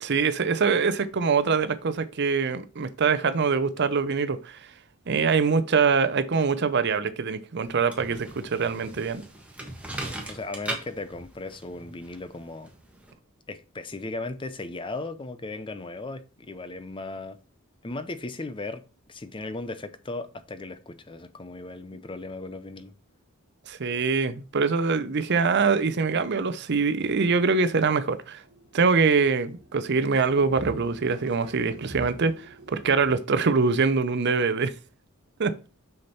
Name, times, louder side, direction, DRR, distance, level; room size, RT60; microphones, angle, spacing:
voice 1, 0.0-4.6 5.1-9.2 23.7-28.4 28.7-34.7 35.4-35.5, right 5 dB, 50° right, 0.6 m, -24 dB
sound 1, 7.7-13.1, right 1 dB, 5° right, 1.6 m, -39 dB
voice 2, 9.9-12.7 13.5-17.4 17.8-18.8 19.1-22.9, left 2 dB, 25° left, 0.6 m, -37 dB
sound 2, 28.0-33.2, equal, 80° right, 1.4 m, -45 dB
6.4 x 5.8 x 4.2 m
head